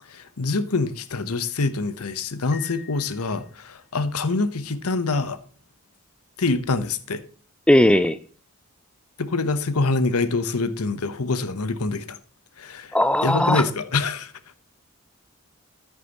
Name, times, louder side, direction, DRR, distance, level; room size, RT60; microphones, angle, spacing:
voice 1, 0.1-5.4 6.4-7.2 9.2-12.2 12.6-12.9 13.2-14.3, left 3 dB, 85° left, 1.0 m, -25 dB
Piano, 2.5-4.0, left 10 dB, 40° left, 2.5 m, -46 dB
voice 2, 7.7-8.2 12.9-13.6, left 1 dB, 5° left, 0.3 m, -17 dB
10.0 x 9.2 x 2.9 m
head